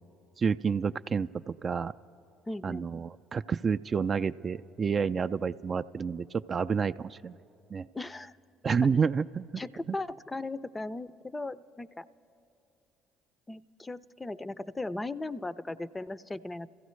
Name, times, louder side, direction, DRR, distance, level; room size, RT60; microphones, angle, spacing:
voice 1, 0.4-1.9 2.6-7.3 7.7-7.8 8.6-9.6, right 6 dB, 40° right, 11 dB, 0.3 m, -29 dB
voice 2, 2.5-2.9 7.9-8.4 9.6-12.1 13.5-16.7, left 2 dB, 20° left, 16 dB, 0.5 m, -37 dB
29.0 x 15.0 x 3.2 m, 2.7 s
hypercardioid pair, 60°, 0 cm